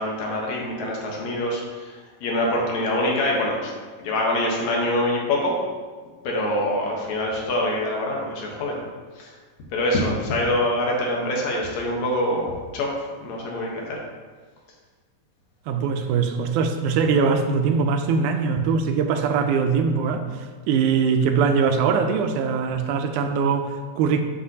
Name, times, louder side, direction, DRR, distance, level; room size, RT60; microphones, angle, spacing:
voice 1, 0.0-3.7 4.0-5.5 6.2-8.8 9.2-9.3 9.7-12.9 13.2-14.0, left 1 dB, 70° left, -1 dB, 2.3 m, -25 dB
voice 2, 15.7-20.2 20.7-24.2, right 5 dB, 90° right, 7 dB, 2.0 m, -22 dB
8.2 x 5.8 x 2.8 m, 1.4 s
omnidirectional pair, 3.4 m